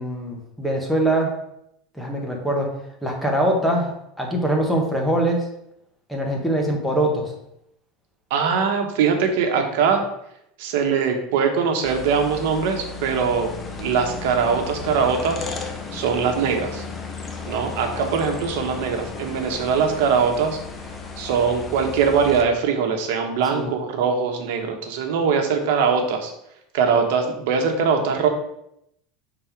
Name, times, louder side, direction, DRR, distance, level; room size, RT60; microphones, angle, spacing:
voice 1, 0.0-1.3 1.9-2.7 3.0-5.5 6.1-7.3 23.5-23.7, right 1 dB, ahead, -1 dB, 1.1 m, -23 dB
voice 2, 8.3-10.0 10.6-15.4 15.9-16.8 17.5-20.6 21.2-26.3 26.7-28.3, right 6 dB, 70° right, 4 dB, 1.1 m, -22 dB
sound 1, 11.8-22.4, left 4 dB, 15° left, 0.7 m, -34 dB
5.4 x 4.0 x 4.6 m, 0.78 s
supercardioid pair, 155°, 0 cm